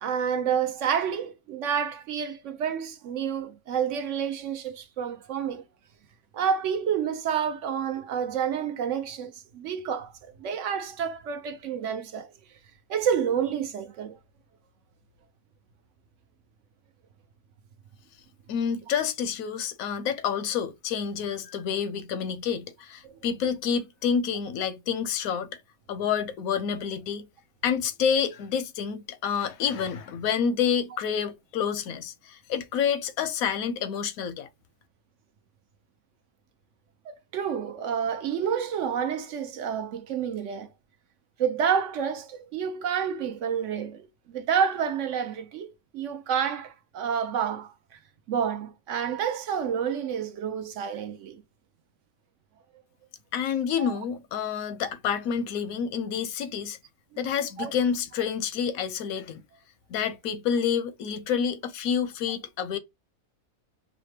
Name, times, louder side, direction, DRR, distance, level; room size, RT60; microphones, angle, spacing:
voice 1, 0.0-5.6 6.3-10.1 10.4-12.3 12.9-14.2 23.0-23.2 37.1-40.7 41.4-44.1 44.3-47.7 48.3-51.4 53.8-53.9 57.6-57.7, right 7 dB, 70° right, 0.9 m, -29 dB
voice 2, 18.5-25.5 25.9-27.3 27.6-34.5 53.3-56.8 57.2-59.4 59.9-62.8, left 7 dB, 85° left, 1.0 m, -28 dB
5.0 x 2.1 x 3.2 m
omnidirectional pair, 1.5 m